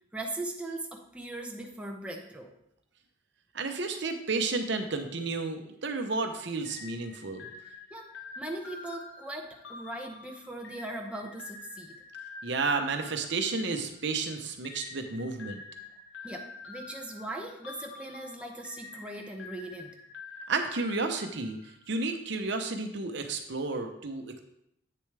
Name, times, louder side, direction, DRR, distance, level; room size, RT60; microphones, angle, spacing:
voice 1, 0.1-2.5 7.9-12.0 16.2-20.0, right 1 dB, 5° right, 1 dB, 0.7 m, -39 dB
voice 2, 3.5-7.5 12.4-15.6 20.5-21.6 21.9-24.4, right 3 dB, 65° right, 5 dB, 0.8 m, -32 dB
sound 1, 6.6-14.1 14.6-21.9, left 4 dB, 80° left, 1.2 m, -47 dB
8.5 x 6.8 x 3.3 m, 0.76 s
head